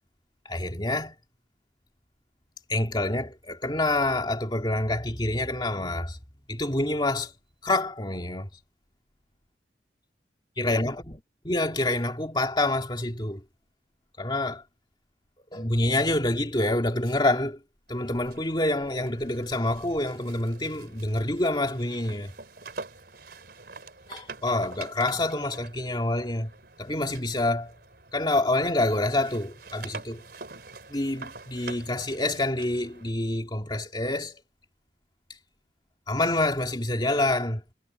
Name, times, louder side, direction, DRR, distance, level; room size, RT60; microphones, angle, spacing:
voice 1, 0.4-1.1 2.7-6.2 6.5-7.3 7.6-8.5 10.6-11.2 11.5-13.4 14.2-14.6 15.5-17.6 17.9-22.3 24.1-26.5 26.8-27.7 28.1-30.2 30.9-34.4 36.1-37.6, left 2 dB, 25° left, 2.4 m, -27 dB
sound 1, 17.9-28.5 28.8-33.1, right 3 dB, 55° right, 4.3 m, -46 dB
head